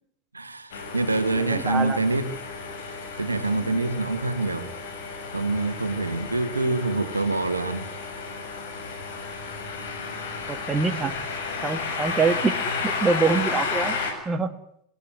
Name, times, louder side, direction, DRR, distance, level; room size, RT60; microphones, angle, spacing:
voice 1, 0.3-2.3 3.2-4.7 5.3-7.9, right 2 dB, 80° right, 9 dB, 2.6 m, -26 dB
sound 1, 0.7-14.1, left 4 dB, 55° left, 7.2 m, -32 dB
voice 2, 1.4-2.0 10.5-11.1 11.6-12.5 12.8-14.0 14.3-14.5, right 4 dB, 15° right, 8 dB, 2.0 m, -25 dB
27.5 x 17.5 x 9.6 m, 0.74 s
figure-of-eight pair, 90°, 0 cm